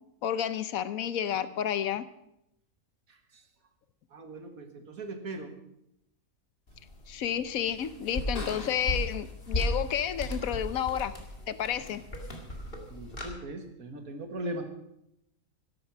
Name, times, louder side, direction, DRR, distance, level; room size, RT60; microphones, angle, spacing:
voice 1, 0.2-2.0 7.1-11.1 11.5-12.0, left 9 dB, 75° left, 14 dB, 1.2 m, -30 dB
voice 2, 3.1-3.4 4.1-5.6 12.9-14.6, right 1 dB, 80° right, 6 dB, 2.2 m, -39 dB
sound 1, 6.7-13.3, left 1 dB, 40° left, 2.4 m, -36 dB
13.0 x 12.0 x 6.0 m, 0.81 s
omnidirectional pair, 1.5 m